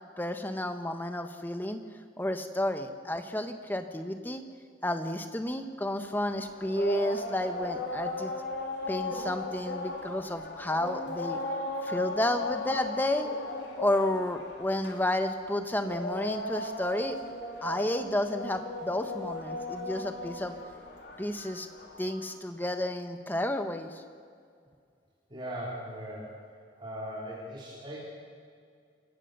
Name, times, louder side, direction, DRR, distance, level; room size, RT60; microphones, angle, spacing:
voice 1, 0.2-1.8 2.2-4.4 4.8-8.3 8.9-11.4 11.8-13.3 13.8-17.2 17.6-20.6 21.2-21.7 22.0-24.0, left 1 dB, 10° left, 7 dB, 1.2 m, -31 dB
sound 1, 6.0-22.4, left 2 dB, 65° left, 3.1 m, -37 dB
voice 2, 25.3-26.3 26.8-28.0, equal, 25° right, -6 dB, 3.8 m, -39 dB
27.5 x 16.0 x 6.8 m, 2.2 s
head